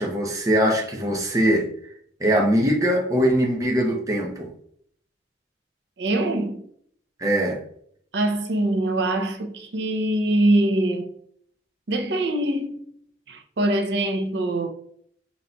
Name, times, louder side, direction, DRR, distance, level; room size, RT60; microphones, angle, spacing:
voice 1, 0.0-1.7 2.2-4.5 7.2-7.6, equal, 20° right, 0.6 m, -21 dB
voice 2, 6.0-6.6 8.1-11.1 11.9-12.8 13.3-14.7, right 1 dB, 70° right, 0.6 m, -23 dB
4.1 x 4.0 x 2.2 m
head